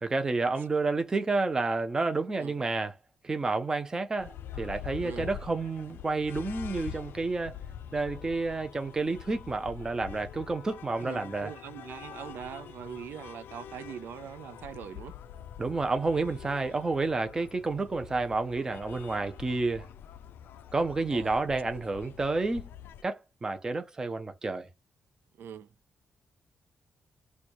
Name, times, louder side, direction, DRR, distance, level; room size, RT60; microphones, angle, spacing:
voice 1, 0.0-2.9 3.2-7.5 7.9-11.5 15.6-19.9 20.7-22.7 23.0-24.7, right 3 dB, 20° right, 0.5 m, -30 dB
sound 1, 4.2-23.0, left 9 dB, 85° left, 0.4 m, -45 dB
voice 2, 11.0-15.2 21.1-21.4 25.4-25.7, right 9 dB, 75° right, 0.4 m, -42 dB
4.4 x 2.3 x 3.0 m
wide cardioid pair, 175°, 4 cm